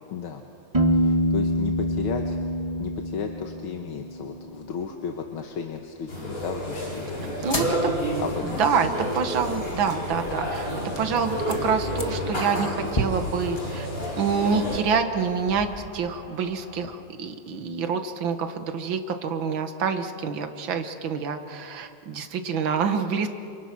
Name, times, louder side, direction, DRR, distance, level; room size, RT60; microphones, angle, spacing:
voice 1, 0.1-0.5 0.9-2.4 2.8-7.5 8.2-8.6, left 6 dB, 85° left, 3 dB, 2.2 m, -34 dB
Piano, 0.7-4.4, equal, 20° right, 1.6 m, -25 dB
sound 1, 6.1-14.8, equal, 40° left, 7.7 m, -30 dB
sound 2, 7.4-16.9, equal, 20° left, 1.9 m, -37 dB
voice 2, 7.4-7.9 8.4-10.7 11.0-13.9 14.2-23.3, right 6 dB, 70° right, 7 dB, 2.2 m, -27 dB
29.0 x 28.5 x 6.1 m, 2.5 s
omnidirectional pair, 2.2 m